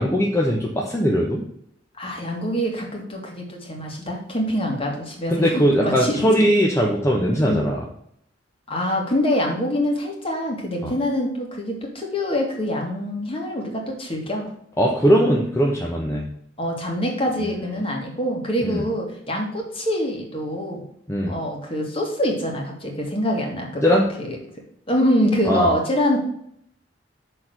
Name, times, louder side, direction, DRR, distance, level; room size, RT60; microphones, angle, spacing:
voice 1, 0.0-1.4 5.3-7.8 10.8-10.9 14.8-16.3 17.6-17.7 18.6-18.9 21.1-21.3 23.8-24.1 25.4-25.7, equal, 15° left, -2 dB, 1.0 m, -20 dB
voice 2, 2.0-6.2 7.4-7.6 8.7-14.5 16.6-20.9 21.3-23.8 24.2-24.4 24.9-26.2, equal, 30° left, 0 dB, 2.1 m, -25 dB
6.5 x 4.6 x 6.5 m, 0.70 s
head